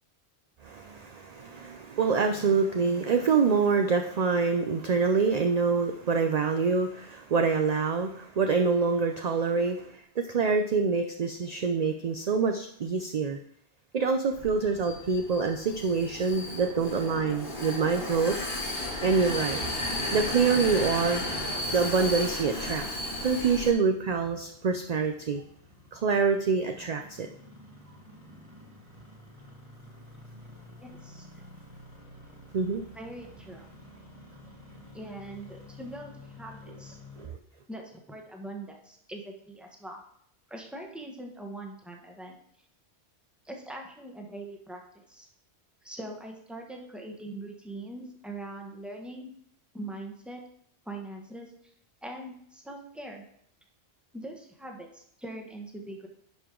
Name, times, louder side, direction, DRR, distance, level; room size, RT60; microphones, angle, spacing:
voice 1, 0.6-13.4 13.9-18.4 19.0-19.6 20.1-21.2 21.7-22.9 23.2-25.4 25.9-27.3 32.5-32.8 37.2-37.4, right 5 dB, 50° right, 5 dB, 0.5 m, -26 dB
Vehicle, 14.3-23.7, left 1 dB, 55° left, 1.6 m, -34 dB
Engine starting, 19.3-37.3, left 1 dB, 30° right, 1.6 m, -50 dB
voice 2, 30.8-31.4 32.9-33.7 34.9-37.0 37.7-40.0 40.5-42.4 43.4-45.3 45.8-49.4 49.7-50.4 50.8-51.5 52.0-53.2 54.1-56.1, right 1 dB, ahead, 1 dB, 1.0 m, -42 dB
10.5 x 4.8 x 3.7 m, 0.68 s
omnidirectional pair, 1.1 m